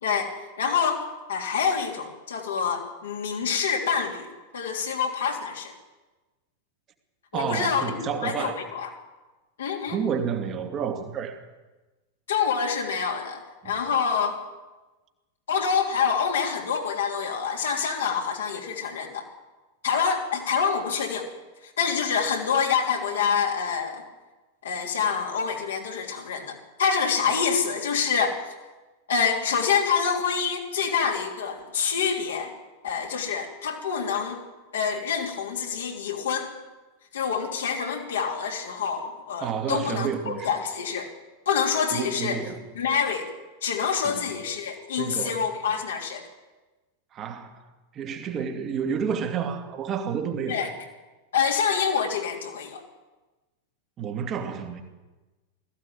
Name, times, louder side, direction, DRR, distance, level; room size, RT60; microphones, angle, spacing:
voice 1, 0.6-1.0 1.3-4.3 4.5-5.7 7.3-8.9 9.6-10.0 12.3-14.4 15.5-19.2 19.8-21.3 21.6-24.0 24.6-28.4 29.1-32.5 32.8-34.4 34.7-36.5 37.1-41.1 41.4-42.4 42.7-43.3 43.6-46.3 50.5-50.7 51.3-52.8, left 6 dB, 65° left, 3.2 m, -26 dB
voice 2, 7.3-8.6 9.9-11.5 13.6-13.7 39.4-40.5 41.9-42.7 44.0-44.3 44.9-45.4 47.1-47.6 47.9-50.6 54.0-54.8, right 7 dB, 30° right, 2.6 m, -30 dB
20.5 x 15.0 x 9.1 m
figure-of-eight pair, 90°, 0 cm